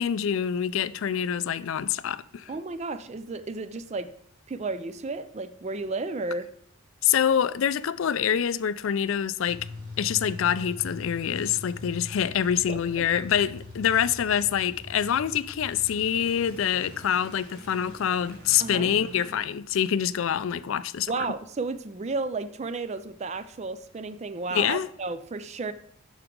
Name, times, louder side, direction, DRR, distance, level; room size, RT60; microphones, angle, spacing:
voice 1, 0.0-2.5 7.0-9.7 10.0-21.1 24.5-24.9, left 9 dB, 65° left, 0.4 m, -26 dB
voice 2, 2.5-4.1 4.5-6.5 12.7-13.1 18.6-18.9 21.1-25.7, right 3 dB, 30° right, 0.4 m, -33 dB
sound 1, 9.5-20.6, left 2 dB, 75° right, 3.3 m, -43 dB
9.2 x 6.2 x 3.7 m
head